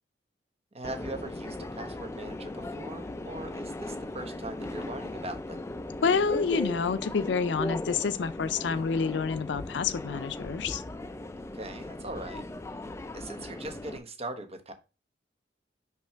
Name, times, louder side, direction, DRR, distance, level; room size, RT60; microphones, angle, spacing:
voice 1, 0.7-5.6 11.5-12.4 13.1-14.7, right 2 dB, 35° right, 1.0 m, -40 dB
Subway metro underground, 0.8-14.0, left 2 dB, 15° left, 0.3 m, -38 dB
voice 2, 6.0-10.8, left 5 dB, 75° left, 0.5 m, -28 dB
5.7 x 3.0 x 5.6 m
head